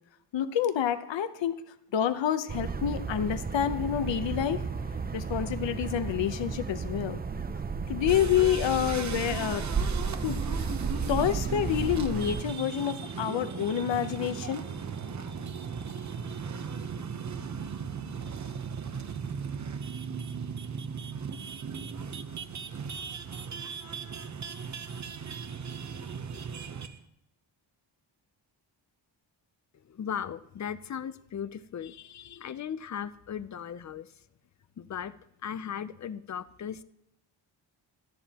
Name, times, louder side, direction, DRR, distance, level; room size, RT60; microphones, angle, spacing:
voice 1, 0.3-1.6 1.9-4.6 5.1-7.2 7.9-9.6 10.2-10.4 11.1-14.6, left 9 dB, 70° left, 11 dB, 0.8 m, -28 dB
sound 1, 2.5-12.4, right 5 dB, 20° right, 0.4 m, -33 dB
sound 2, 8.1-27.0, right 6 dB, 40° right, 0.8 m, -37 dB
voice 2, 29.8-34.1 34.8-35.1 35.4-36.8, left 8 dB, 40° left, 14 dB, 0.5 m, -37 dB
17.5 x 13.0 x 2.9 m, 0.85 s
wide cardioid pair, 155°, 46 cm